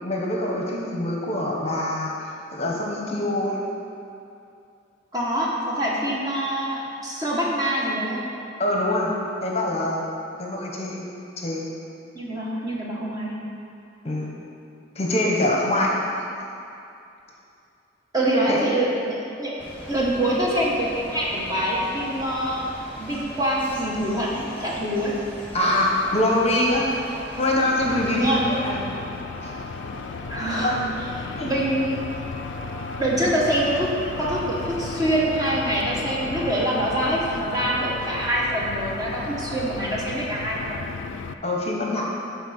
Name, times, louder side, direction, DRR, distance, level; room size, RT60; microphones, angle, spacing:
voice 1, 0.0-3.6 8.6-9.1 9.4-10.0 10.4-11.0 11.4-11.7 14.0-14.4 15.0-16.2 18.5-18.6 25.5-26.9 27.4-28.8 29.4-29.5 30.6-30.8 31.3-31.5 41.4-42.0, left 1 dB, 35° left, -2 dB, 0.9 m, -24 dB
voice 2, 5.1-6.7 7.0-8.3 12.1-13.4 18.1-19.5 19.9-22.6 23.0-25.2 28.1-28.6 30.3-30.8 31.2-32.0 33.0-33.9 34.2-41.0, right 1 dB, 20° right, -5 dB, 1.1 m, -25 dB
sound 1, 19.6-28.4, equal, 10° left, 1.3 m, -40 dB
sound 2, 25.9-40.0, right 1 dB, 75° right, 1.0 m, -41 dB
sound 3, 27.8-41.3, left 5 dB, 70° left, 0.3 m, -35 dB
11.0 x 4.1 x 4.2 m, 2.6 s
head